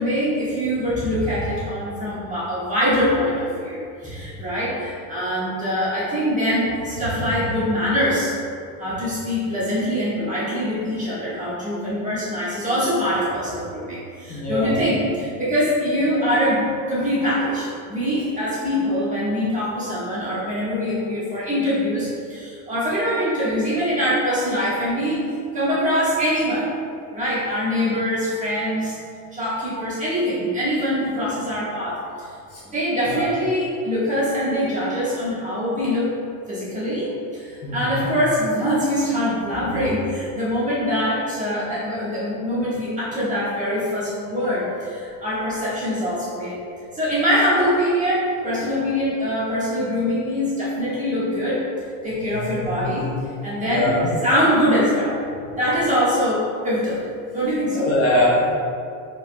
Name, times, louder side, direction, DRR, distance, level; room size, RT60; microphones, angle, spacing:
voice 1, 0.0-8.3 8.8-26.7 27.1-29.0 29.3-32.3 32.7-36.1 36.5-46.6 46.9-51.7 52.0-53.1 53.4-53.9 54.2-55.2 55.5-57.0 57.3-57.9, equal, 15° right, -9 dB, 1.5 m, -23 dB
voice 2, 14.3-14.8 32.5-32.6 33.1-33.3 37.6-38.1 52.2-53.1 53.6-54.1 57.7-58.5, left 1 dB, 35° left, -7 dB, 0.8 m, -23 dB
5.1 x 4.0 x 2.2 m, 2.4 s
cardioid pair, 135°, 44 cm